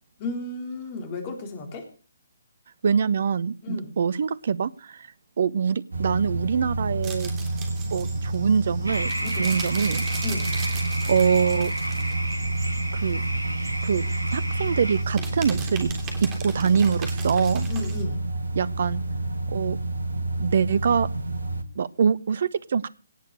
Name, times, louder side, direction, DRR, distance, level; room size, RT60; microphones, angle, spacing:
voice 1, 0.2-1.9 3.6-3.9 9.2-9.6 10.2-10.5 17.7-18.2, left 2 dB, 30° left, 5 dB, 3.8 m, -33 dB
voice 2, 2.8-5.1 5.4-7.3 7.9-9.1 9.4-10.0 11.1-11.7 12.9-13.2 13.8-14.0 14.3-15.9 16.2-17.7 18.5-19.0 19.5-19.8 20.4-21.1 21.8-22.9, right 6 dB, 50° right, 21 dB, 0.6 m, -24 dB
sound 1, 5.9-21.6, right 2 dB, 70° right, 1.7 m, -29 dB
sound 2, 7.0-18.0, right 5 dB, 20° right, 3.3 m, -40 dB
sound 3, 8.9-15.0, right 1 dB, 85° right, 1.2 m, -32 dB
18.0 x 6.6 x 6.6 m, 0.37 s
figure-of-eight pair, 135°, 0 cm